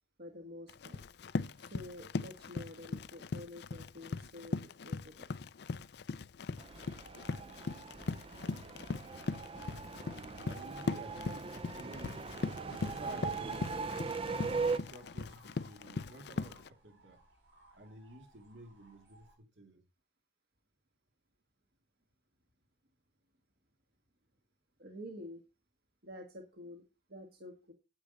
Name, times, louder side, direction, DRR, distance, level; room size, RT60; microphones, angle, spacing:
voice 1, 0.2-1.0 1.6-5.1 24.8-25.4 26.0-26.8 27.1-27.7, left 1 dB, 55° right, 1.7 m, -49 dB
Run, 0.7-16.7, left 4 dB, 60° left, 0.5 m, -40 dB
sound 1, 6.6-14.8, right 4 dB, 30° right, 0.5 m, -40 dB
voice 2, 10.5-12.4 12.7-14.0 14.4-17.2 17.7-19.8, right 1 dB, 70° right, 2.2 m, -53 dB
sound 2, 12.3-19.4, right 1 dB, 90° right, 7.1 m, -62 dB
9.9 x 8.8 x 3.9 m
head